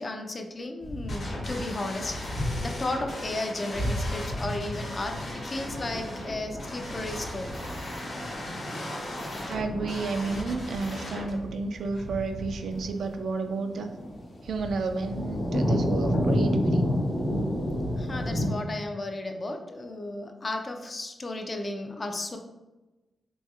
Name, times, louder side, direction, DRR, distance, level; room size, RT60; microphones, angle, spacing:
voice 1, 0.0-7.5 18.0-22.4, left 2 dB, 30° left, 4 dB, 0.4 m, -34 dB
sound 1, 0.8-2.9 3.2-3.3 3.7-18.5, equal, 50° left, 0.7 m, -31 dB
sound 2, 1.1-11.3, left 1 dB, 65° left, 1.2 m, -38 dB
voice 2, 9.5-13.9 14.4-16.9, right 3 dB, 80° right, 6 dB, 0.3 m, -31 dB
4.0 x 2.7 x 2.4 m, 1.1 s
wide cardioid pair, 135°, 0 cm